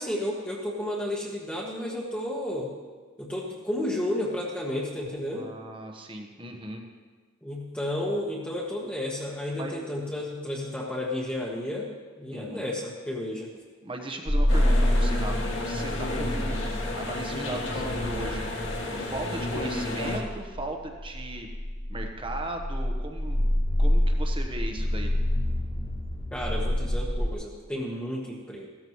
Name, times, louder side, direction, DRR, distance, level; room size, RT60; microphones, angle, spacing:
voice 1, 0.0-2.7 3.2-5.5 7.4-11.9 12.2-13.5 26.3-28.7, left 1 dB, 5° left, -5 dB, 1.3 m, -32 dB
voice 2, 5.3-6.8 9.6-9.7 12.3-12.7 13.8-16.6 16.9-21.5 21.9-23.4 23.8-25.1, right 2 dB, 25° right, 3 dB, 1.2 m, -37 dB
sound 1, 14.3-27.3, left 1 dB, 40° left, 2.1 m, -27 dB
sound 2, 14.5-20.2, left 1 dB, 70° left, 2.3 m, -32 dB
16.0 x 13.5 x 3.2 m, 1.4 s
head